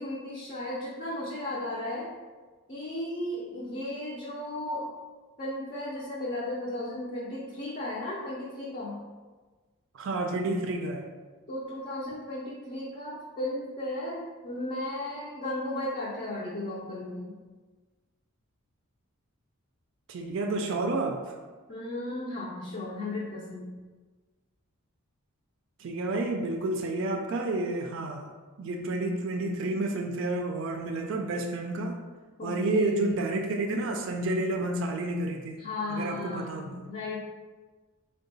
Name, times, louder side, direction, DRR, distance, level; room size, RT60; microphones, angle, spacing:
voice 1, 0.0-2.1 2.7-4.9 5.4-9.0 11.5-17.4 21.7-23.7 32.4-33.2 35.6-37.2, left 1 dB, 35° left, -6 dB, 0.5 m, -35 dB
voice 2, 9.9-11.1 20.1-21.4 25.8-32.0 32.4-35.6 35.9-36.9, right 2 dB, 60° right, 3 dB, 0.4 m, -30 dB
3.7 x 2.2 x 3.9 m, 1.3 s
head